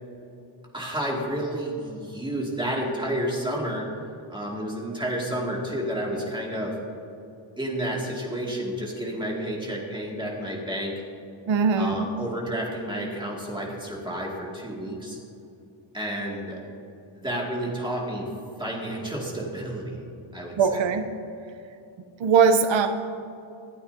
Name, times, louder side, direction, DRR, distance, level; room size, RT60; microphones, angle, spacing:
voice 1, 0.7-3.8 4.3-6.8 7.6-10.9 11.8-15.2 15.9-16.6 17.1-18.3 18.6-20.0 20.3-20.8, right 1 dB, 10° right, -3 dB, 2.1 m, -30 dB
voice 2, 11.5-12.0 20.6-21.1 22.2-22.9, right 5 dB, 65° right, 7 dB, 0.7 m, -20 dB
25.5 x 8.7 x 2.7 m, 2.7 s
wide cardioid pair, 180°, 49 cm